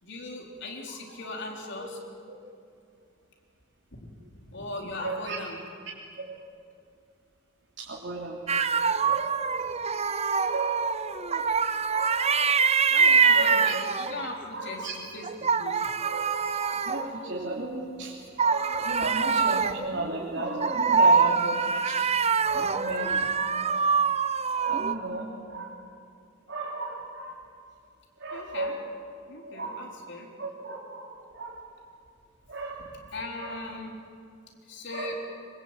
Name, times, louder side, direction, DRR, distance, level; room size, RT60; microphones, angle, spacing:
voice 1, 0.0-2.0 3.9-5.6 9.0-9.1 12.9-15.8 28.3-28.8 29.3-30.3 33.1-34.0 34.7-35.2, left 2 dB, 65° left, 1 dB, 4.1 m, -39 dB
voice 2, 5.0-5.4 6.3-6.4 7.8-8.4 9.0-9.4 10.5-11.6 11.9-12.5 13.3-13.8 14.5-14.9 16.0-18.1 18.4-22.0 22.4-23.8 24.6-25.8 26.5-27.5 28.2-28.8 29.4-29.9 30.4-31.6 32.5-32.9 33.4-33.6 34.9-35.2, right 2 dB, 65° right, -4 dB, 3.5 m, -35 dB
sound 1, 8.5-14.4 15.2-17.7 18.4-25.0, right 5 dB, 35° right, 0.8 m, -25 dB
26.0 x 24.5 x 9.0 m, 2.4 s
head